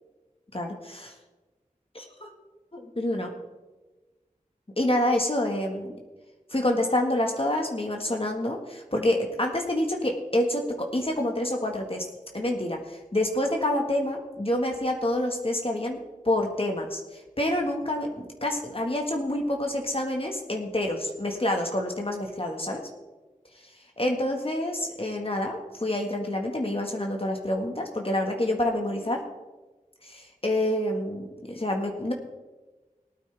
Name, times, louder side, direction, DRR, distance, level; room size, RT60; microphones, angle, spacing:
voice 1, 0.5-1.1 1.9-2.3 2.7-3.3 4.8-6.0 6.5-12.0 12.3-16.0 16.2-22.8 24.0-29.2 30.0-32.1, left 1 dB, 40° left, 2 dB, 1.7 m, -27 dB
19.0 x 9.2 x 3.5 m, 1.2 s
wide cardioid pair, 50°, 14 cm